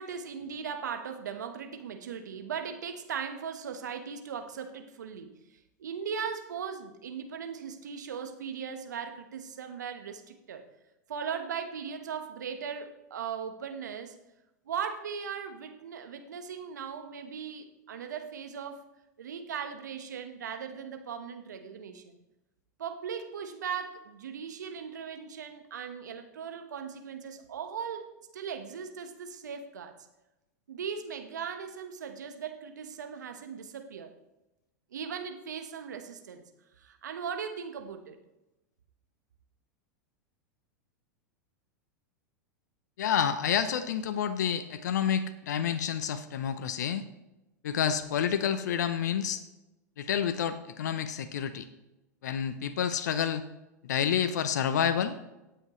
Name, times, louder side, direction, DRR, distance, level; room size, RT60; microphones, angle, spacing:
voice 1, 0.0-5.3 5.8-10.7 11.1-14.2 14.7-18.8 19.2-22.2 22.8-29.9 30.7-34.1 34.9-36.4 36.8-38.2, right 7 dB, 75° right, 7 dB, 1.3 m, -38 dB
voice 2, 43.0-47.1 47.6-49.4 50.0-51.7 52.2-53.4 53.8-55.2, left 8 dB, 70° left, 12 dB, 0.7 m, -29 dB
17.5 x 7.8 x 3.1 m, 0.97 s
hypercardioid pair, 95°, 10 cm